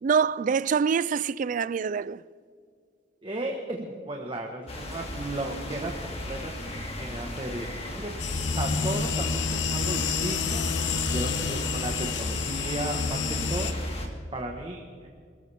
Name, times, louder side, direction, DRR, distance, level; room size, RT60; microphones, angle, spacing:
voice 1, 0.0-2.2, right 6 dB, 45° right, 0.3 m, -25 dB
voice 2, 3.2-6.5 7.0-8.1 8.5-14.0 14.3-15.1, right 1 dB, 30° right, 1.4 m, -35 dB
sound 1, 4.7-14.1, left 1 dB, 35° left, 2.4 m, -36 dB
sound 2, 8.2-13.7, left 5 dB, 80° left, 1.1 m, -29 dB
26.5 x 14.5 x 3.5 m
head